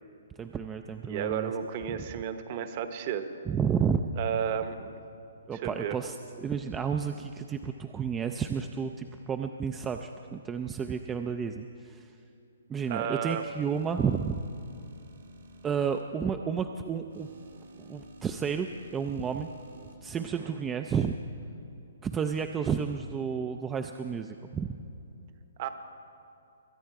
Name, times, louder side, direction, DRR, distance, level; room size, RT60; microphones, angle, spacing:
voice 1, 0.4-1.5 3.5-4.0 5.5-12.1 12.7-14.4 15.6-17.3 17.8-19.5 20.0-21.2 22.0-24.7, right 6 dB, 10° right, 6 dB, 0.4 m, -31 dB
voice 2, 1.1-3.3 4.2-4.9 5.5-6.0 12.9-13.5 20.2-20.5 25.6-25.7, right 8 dB, 35° right, 9 dB, 0.9 m, -33 dB
sound 1, 13.4-16.0 17.1-20.0, right 2 dB, 75° right, 1.9 m, -52 dB
22.5 x 8.9 x 4.7 m, 2.8 s
hypercardioid pair, 160°, 0 cm